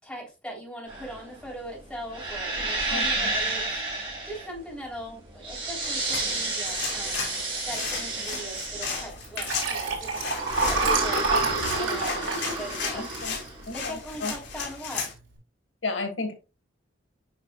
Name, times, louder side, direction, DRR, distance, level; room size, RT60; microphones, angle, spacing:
voice 1, 0.0-3.6 4.2-7.2 7.6-10.3 10.5-13.1 13.7-15.1, equal, 5° left, -3 dB, 3.3 m, -40 dB
sound 1, 0.9-14.5, right 2 dB, 25° right, 3.6 m, -31 dB
voice 2, 2.9-3.3 11.3-11.5 12.9-13.3 13.7-14.3 15.8-16.3, left 3 dB, 90° left, 6 dB, 1.6 m, -33 dB
sound 2, 5.8-15.1, left 5 dB, 65° left, 2.4 m, -35 dB
Liquid, 9.2-13.9 14.4-14.6 14.9-15.0, right 3 dB, 85° right, 3.4 m, -28 dB
8.8 x 5.7 x 2.3 m, 0.28 s
head